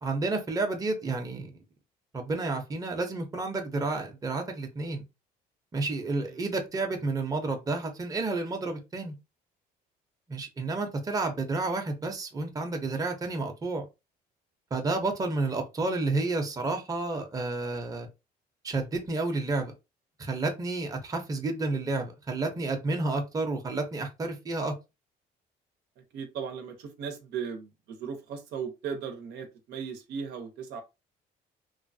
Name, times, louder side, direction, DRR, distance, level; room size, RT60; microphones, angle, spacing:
voice 1, 0.0-1.5 2.1-5.0 5.7-9.1 10.3-13.8 14.7-18.1 18.6-19.7 20.2-24.7, right 3 dB, 20° right, 0.7 m, -30 dB
voice 2, 26.0-30.8, right 6 dB, 80° right, 0.8 m, -37 dB
3.1 x 2.1 x 2.6 m
cardioid pair, 110°, 17 cm